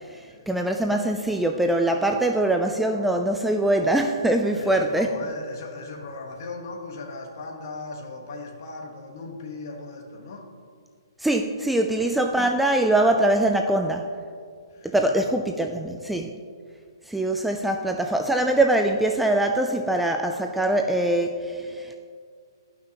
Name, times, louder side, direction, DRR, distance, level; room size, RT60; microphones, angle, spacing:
voice 1, 0.5-5.1 11.2-14.1 14.8-16.3 17.1-21.9, right 1 dB, 5° right, 3 dB, 0.3 m, -23 dB
voice 2, 4.6-10.5 11.9-12.1 14.7-15.4 15.7-16.0, left 3 dB, 50° left, 2 dB, 1.3 m, -38 dB
12.5 x 5.8 x 2.9 m, 2.1 s
hypercardioid pair, 140°, 2 cm